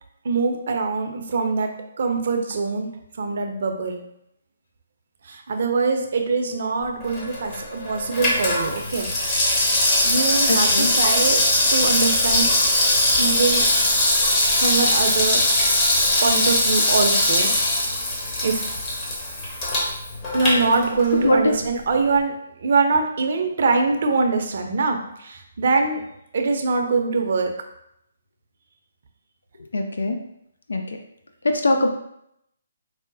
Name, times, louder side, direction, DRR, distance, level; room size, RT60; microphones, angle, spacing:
voice 1, 0.2-2.9 3.2-4.0 5.2-9.1 10.0-11.4 11.7-12.5 13.2-13.7 14.5-15.4 16.2-17.5 18.4-18.7 20.3-26.0 26.3-27.5, right 4 dB, 60° right, 4 dB, 0.5 m, -23 dB
Water tap faucet / Sink (filling or washing), 7.0-21.3 21.6-21.7, left 1 dB, 30° left, 1.0 m, -21 dB
voice 2, 10.5-10.9 21.1-21.5 29.7-30.2 30.7-30.8 31.4-31.9, left 2 dB, 75° left, 5 dB, 0.3 m, -21 dB
4.7 x 2.1 x 2.6 m, 0.76 s
figure-of-eight pair, 140°, 0 cm